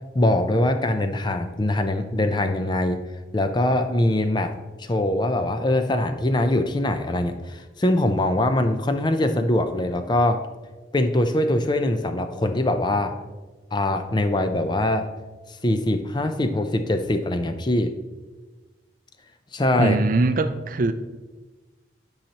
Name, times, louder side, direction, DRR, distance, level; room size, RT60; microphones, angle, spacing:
voice 1, 0.1-3.0 3.3-4.5 4.8-10.4 10.9-13.1 13.7-15.1 15.6-17.9 19.5-20.0, left 1 dB, 25° left, 0.5 m, -22 dB
voice 2, 19.8-20.9, right 2 dB, 45° right, 0.4 m, -21 dB
12.0 x 5.6 x 2.9 m
head